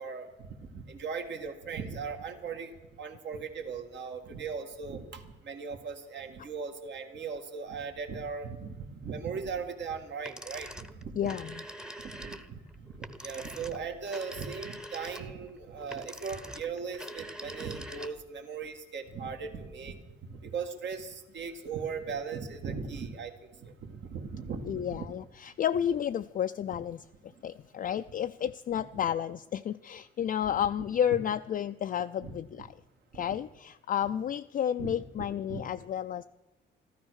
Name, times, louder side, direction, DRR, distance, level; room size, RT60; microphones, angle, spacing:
voice 1, 0.0-11.2 12.0-25.3 28.7-28.8 30.4-30.6 32.2-32.3 33.1-33.2 34.8-35.0 35.5-35.6, right 5 dB, 65° right, 5 dB, 1.8 m, -38 dB
sound 1, 10.2-18.4, right 1 dB, 5° right, 0.9 m, -44 dB
voice 2, 11.2-11.5 24.7-27.0 27.4-32.7 33.1-36.2, left 9 dB, 45° left, 8 dB, 0.4 m, -31 dB
14.0 x 13.0 x 6.4 m, 1.1 s
cardioid pair, 90°, 20 cm